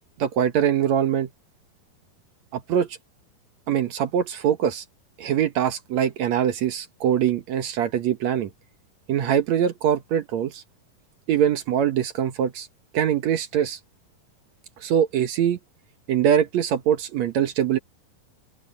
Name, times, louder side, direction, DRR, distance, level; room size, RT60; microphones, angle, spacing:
voice 1, 0.2-1.3 2.5-2.9 3.7-4.8 5.2-8.5 9.1-10.6 11.3-12.7 12.9-13.8 14.8-15.6 16.1-17.8, right 9 dB, 65° right, 1.8 m, -23 dB
open air
omnidirectional pair, 4.5 m